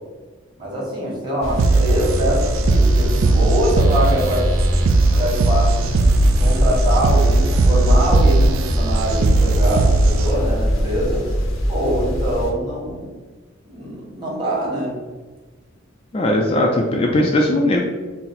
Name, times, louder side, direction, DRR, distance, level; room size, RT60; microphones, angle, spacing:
voice 1, 0.6-4.4 5.1-5.9 6.4-11.2 11.7-13.1 13.6-15.0, equal, 25° right, -6 dB, 1.3 m, -24 dB
sound 1, 1.4-12.5, equal, 75° left, 0.7 m, -21 dB
sound 2, 1.6-10.6, right 3 dB, 80° right, 0.3 m, -19 dB
voice 2, 16.1-17.8, left 1 dB, 30° left, 0 dB, 0.3 m, -18 dB
4.0 x 2.0 x 4.0 m, 1.3 s
head